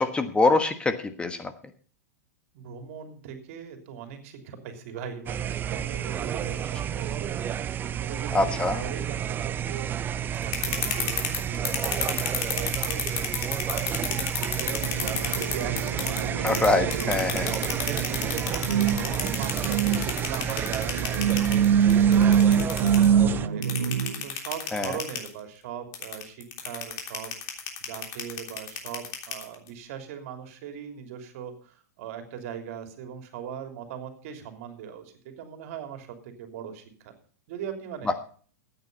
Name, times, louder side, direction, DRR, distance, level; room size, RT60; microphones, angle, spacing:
voice 1, 0.0-1.5 8.3-8.8 16.4-17.5 24.7-25.0, left 3 dB, 10° left, 8 dB, 1.3 m, -24 dB
voice 2, 2.5-7.4 8.0-13.0 13.5-16.3 16.9-37.1 37.5-38.1, right 8 dB, 60° right, 6 dB, 3.1 m, -40 dB
sound 1, 5.3-23.5, right 9 dB, 25° right, 0.5 m, -31 dB
sound 2, 10.3-16.2 16.5-23.1 23.6-25.3 25.9-29.7, left 9 dB, 45° left, 3.3 m, -30 dB
sound 3, 14.8-24.2, right 8 dB, 90° right, 1.5 m, -25 dB
14.0 x 9.2 x 5.4 m, 0.44 s
hypercardioid pair, 115°, 9 cm